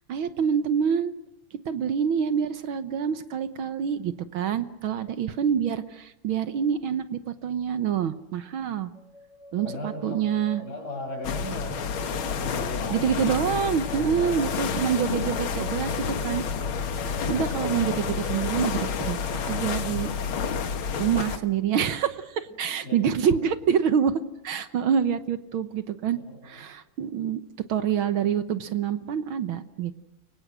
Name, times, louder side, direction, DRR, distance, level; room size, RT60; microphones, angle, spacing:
voice 1, 0.1-1.1 1.7-8.9 9.5-10.6 12.9-15.9 16.2-16.4 17.3-19.2 19.5-20.1 21.0-27.4 27.7-29.9, right 8 dB, 70° right, 11 dB, 1.8 m, -26 dB
sound 1, 9.0-20.5, left 1 dB, ahead, 5.0 m, -45 dB
voice 2, 9.6-10.2 10.6-11.8 12.3-13.5 14.0-14.6 22.8-23.0 23.2-23.4 26.2-26.6, left 1 dB, 45° left, 4 dB, 6.7 m, -37 dB
sound 2, 11.2-21.4, left 6 dB, 70° left, 2.2 m, -29 dB
30.0 x 24.5 x 6.3 m, 0.88 s
omnidirectional pair, 2.4 m